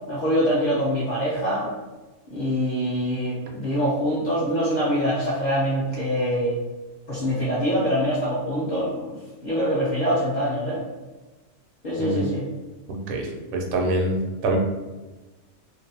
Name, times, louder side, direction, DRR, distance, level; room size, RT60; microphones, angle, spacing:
voice 1, 0.1-1.7 2.3-6.6 7.1-9.2 9.4-10.8 11.8-12.4, equal, 55° left, -8 dB, 0.5 m, -24 dB
voice 2, 12.9-14.6, right 2 dB, 90° right, 1 dB, 1.0 m, -26 dB
2.6 x 2.0 x 2.7 m, 1.2 s
omnidirectional pair, 1.4 m